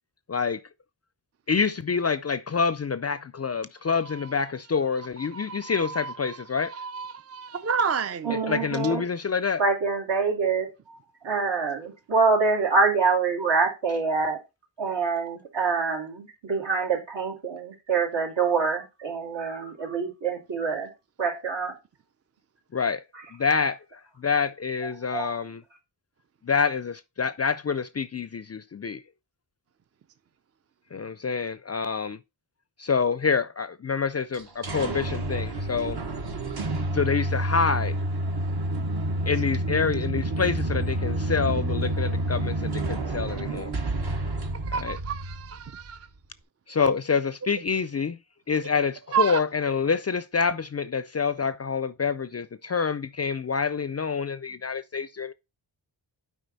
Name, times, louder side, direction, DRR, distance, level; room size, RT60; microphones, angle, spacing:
voice 1, 0.3-0.6 1.5-6.7 8.5-9.6 22.7-23.0 23.3-25.6 26.4-29.0 30.9-32.2 32.8-36.0 36.9-38.0 39.3-43.8 44.8-45.0 46.7-48.2 48.5-55.3, left 5 dB, 35° left, 0.4 m, -27 dB
voice 2, 4.0-4.5 5.2-8.4 44.5-46.1 49.1-49.4, right 6 dB, 35° right, 0.4 m, -31 dB
voice 3, 8.3-9.0 9.6-11.0 11.2-14.4 14.8-20.9 21.2-21.7 25.1-25.4, right 4 dB, 70° right, 2.8 m, -25 dB
sound 1, 34.3-46.0, right 1 dB, 55° right, 1.2 m, -29 dB
7.9 x 4.8 x 4.0 m
wide cardioid pair, 75°, 45 cm